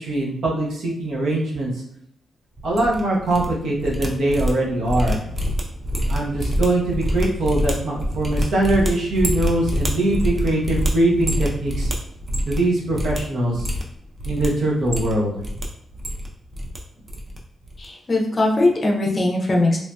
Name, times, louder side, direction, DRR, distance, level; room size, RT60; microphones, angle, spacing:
voice 1, 0.0-1.7 2.6-5.2 6.1-11.9 12.5-13.7 14.2-15.3, right 1 dB, 65° right, -3 dB, 0.8 m, -22 dB
sound 1, 2.6-3.5 3.7-12.7 12.9-13.2 13.5-14.5 14.8-15.6 15.9-16.8 17.1-17.4 17.6-17.9, equal, 20° right, 0.4 m, -25 dB
voice 2, 17.8-19.8, left 2 dB, 25° left, 0 dB, 0.6 m, -20 dB
3.1 x 2.7 x 2.2 m, 0.71 s
wide cardioid pair, 160°, 0 cm